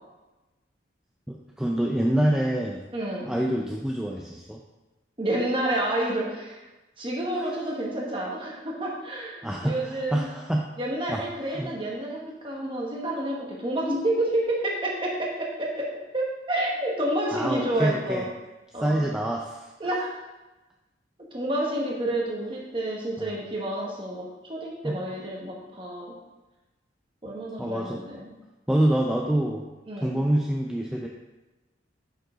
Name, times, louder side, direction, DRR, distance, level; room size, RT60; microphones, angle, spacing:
voice 1, 1.3-2.8 3.3-4.6 7.3-7.7 9.4-10.6 11.1-11.2 11.5-11.7 17.3-18.2 18.8-20.0 23.2-23.3 24.8-25.0 27.6-28.0 28.7-29.6 30.0-31.1, right 1 dB, 5° right, -1 dB, 0.4 m, -26 dB
voice 2, 2.9-3.3 5.2-6.6 7.0-10.3 10.8-18.3 18.7-19.1 19.8-20.1 21.3-26.1 27.2-28.3 29.9-30.2, right 1 dB, 25° right, -2 dB, 1.3 m, -29 dB
6.4 x 4.7 x 5.0 m, 1.1 s
head